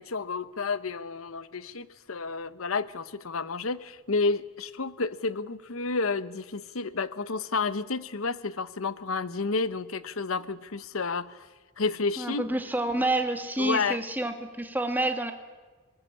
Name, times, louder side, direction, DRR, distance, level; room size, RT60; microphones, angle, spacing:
voice 1, 0.0-11.5 11.8-12.5 13.6-14.0, left 4 dB, 85° left, 14 dB, 1.0 m, -30 dB
voice 2, 12.2-15.3, right 2 dB, 10° right, 5 dB, 1.9 m, -28 dB
20.5 x 19.5 x 9.9 m, 1.3 s
head